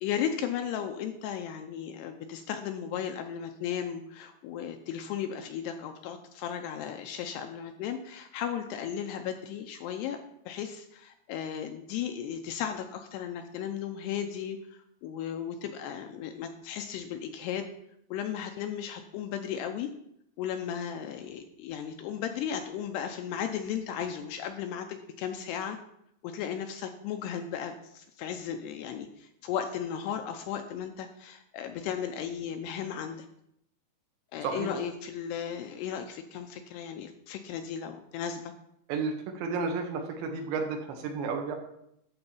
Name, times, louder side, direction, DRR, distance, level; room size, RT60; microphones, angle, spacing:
voice 1, 0.0-10.2 10.5-17.7 18.1-19.9 20.4-25.8 26.2-33.2 34.3-38.5, left 8 dB, 80° left, 6 dB, 2.5 m, -35 dB
voice 2, 34.4-34.7 38.9-41.6, right 4 dB, 75° right, 3 dB, 3.5 m, -32 dB
12.0 x 4.4 x 7.1 m, 0.77 s
omnidirectional pair, 5.2 m